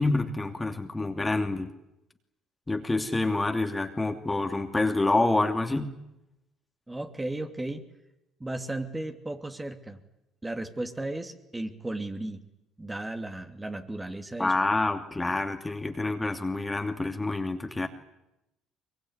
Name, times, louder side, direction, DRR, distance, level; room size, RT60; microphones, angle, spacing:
voice 1, 0.0-1.7 2.7-5.9 14.4-17.9, left 2 dB, 15° left, 5 dB, 2.8 m, -27 dB
voice 2, 6.9-7.8 8.4-10.0 10.4-12.4 12.8-14.5, right 2 dB, 15° right, 5 dB, 2.9 m, -35 dB
23.5 x 23.0 x 9.8 m, 0.89 s
hypercardioid pair, 70°, 0 cm